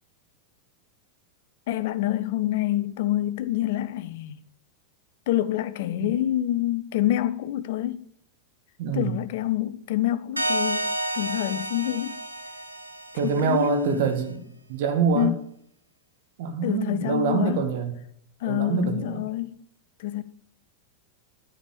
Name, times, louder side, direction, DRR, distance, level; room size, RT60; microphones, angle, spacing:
voice 1, 1.7-4.4 5.3-8.1 8.9-10.9 11.1-12.2 13.2-14.1 15.1-15.3 16.6-17.6 18.4-19.6 20.0-20.2, left 13 dB, 55° left, 0.6 m, -27 dB
voice 2, 8.8-9.2 13.2-15.3 16.4-17.9 18.5-19.3, right 5 dB, 50° right, 1.4 m, -25 dB
sound 1, 10.4-13.8, right 1 dB, 85° right, 0.6 m, -30 dB
10.5 x 4.9 x 7.0 m
figure-of-eight pair, 90°, 0 cm